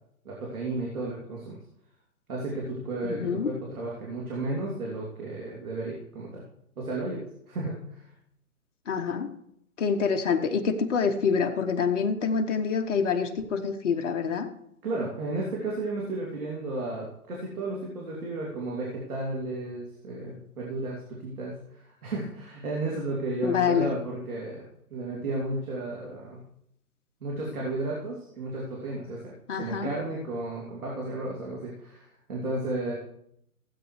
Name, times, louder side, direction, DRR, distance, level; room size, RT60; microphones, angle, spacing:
voice 1, 0.2-1.6 2.3-6.4 6.8-8.0 14.8-26.4 27.2-32.9, right 2 dB, 65° right, -3 dB, 2.9 m, -33 dB
voice 2, 3.0-3.5 8.9-9.3 9.8-14.5 23.4-23.9 29.5-29.9, left 6 dB, 50° left, 4 dB, 1.0 m, -26 dB
16.5 x 8.2 x 3.2 m, 0.74 s
hypercardioid pair, 145°, 46 cm